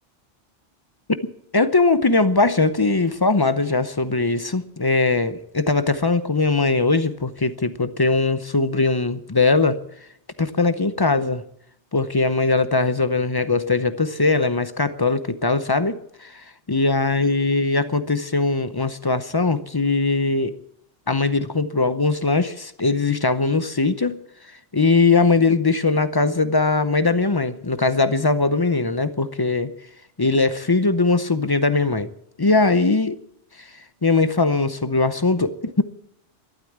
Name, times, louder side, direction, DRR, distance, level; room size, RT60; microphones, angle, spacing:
voice 1, 1.5-9.8 10.4-11.4 11.9-16.4 16.7-20.5 21.1-24.2 24.7-29.7 30.2-32.1 32.4-33.2 34.0-35.8, left 3 dB, 25° left, 12 dB, 0.6 m, -20 dB
13.0 x 12.0 x 8.6 m, 0.73 s
omnidirectional pair, 1.2 m